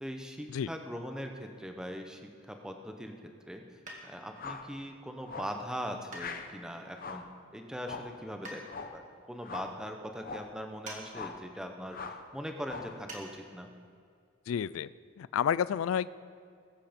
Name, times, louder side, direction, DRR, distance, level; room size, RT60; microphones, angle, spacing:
voice 1, 0.0-3.6 4.0-7.3 7.5-8.6 8.9-13.7, equal, 5° right, 4 dB, 0.9 m, -41 dB
sound 1, 3.9-4.4 6.1-6.8 8.4-8.7 10.8-11.1 11.3-11.4 13.1-13.3 13.6-13.7, right 1 dB, 40° right, 2.1 m, -45 dB
sound 2, 4.3-4.7 5.3-5.6 6.1-6.5 6.9-7.3 7.8-8.2 8.7-9.0 9.4-9.8 10.2-10.5 11.1-11.5 11.9-12.3 12.6-13.0, left 4 dB, 45° left, 0.8 m, -42 dB
voice 2, 14.5-14.9 15.2-16.1, left 8 dB, 85° left, 19 dB, 0.3 m, -30 dB
20.5 x 8.4 x 5.2 m, 2.2 s
head